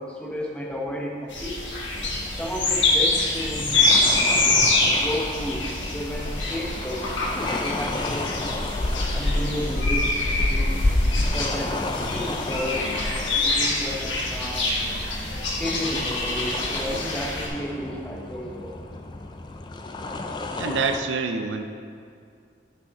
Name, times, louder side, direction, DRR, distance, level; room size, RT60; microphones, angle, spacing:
voice 1, 0.0-1.7 2.3-3.9 5.0-7.1 7.6-8.6 9.1-10.8 11.3-14.7 15.6-18.8, equal, 5° left, -3 dB, 0.8 m, -33 dB
sound 1, 1.3-17.5, left 2 dB, 90° left, 1.4 m, -26 dB
sound 2, 1.9-21.0, left 2 dB, 25° left, 0.3 m, -30 dB
voice 2, 20.6-21.7, right 4 dB, 85° right, 7 dB, 0.5 m, -27 dB
9.6 x 5.6 x 3.6 m, 2.3 s
head